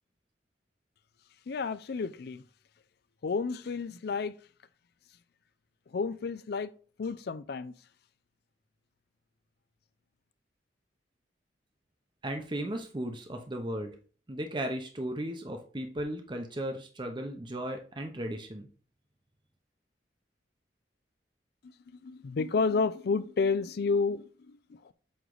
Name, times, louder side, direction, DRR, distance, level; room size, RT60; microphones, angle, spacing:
voice 1, 1.5-2.4 3.2-4.4 5.9-6.7 7.0-7.7 21.9-24.9, left 4 dB, 60° left, 0.4 m, -31 dB
voice 2, 12.2-13.9 14.3-18.7, right 1 dB, 25° right, 0.7 m, -36 dB
7.8 x 3.2 x 3.8 m
head